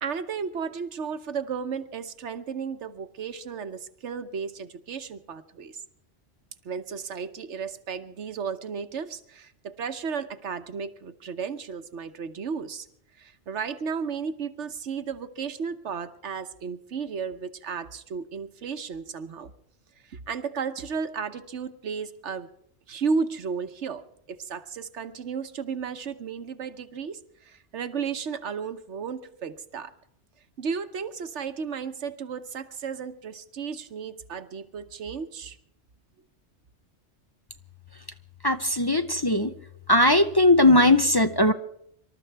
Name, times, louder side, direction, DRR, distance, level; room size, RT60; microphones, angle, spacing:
voice 1, 0.0-5.8 6.6-12.9 13.2-19.5 20.0-22.5 22.9-29.9 30.6-35.6, right 6 dB, 85° right, 10 dB, 1.3 m, -34 dB
voice 2, 38.4-39.5 39.9-41.5, left 1 dB, 25° left, 7 dB, 0.7 m, -19 dB
26.0 x 13.0 x 3.4 m, 0.72 s
omnidirectional pair, 1.2 m